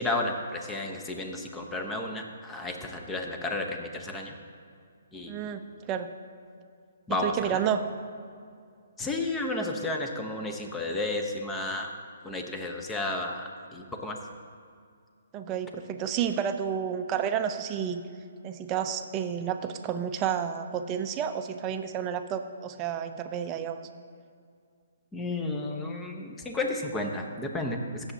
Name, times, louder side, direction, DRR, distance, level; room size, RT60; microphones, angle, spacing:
voice 1, 0.0-4.3 5.1-5.4 7.1-7.6 9.0-11.9 12.2-13.4 13.7-14.2 25.1-28.1, left 2 dB, 10° left, 3 dB, 0.9 m, -32 dB
voice 2, 5.3-6.1 7.2-7.8 15.3-18.0 18.4-23.8, right 8 dB, 25° right, 7 dB, 0.6 m, -30 dB
17.0 x 7.1 x 2.8 m, 2.3 s
hypercardioid pair, 140°, 0 cm